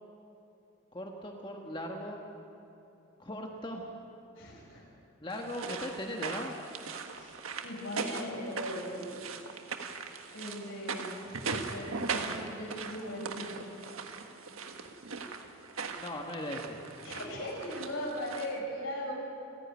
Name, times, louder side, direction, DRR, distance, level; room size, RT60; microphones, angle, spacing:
voice 1, 0.9-2.2 3.2-3.9 5.2-6.5 16.0-16.8, left 1 dB, 25° left, 1 dB, 1.4 m, -38 dB
voice 2, 4.3-4.8 7.1-7.3 7.6-9.2 10.3-11.2 11.7-13.6 17.0-19.2, equal, 75° left, -3 dB, 6.1 m, -39 dB
sound 1, 5.3-18.6, right 4 dB, 85° right, 1.5 m, -39 dB
29.5 x 10.5 x 9.6 m, 2.8 s
head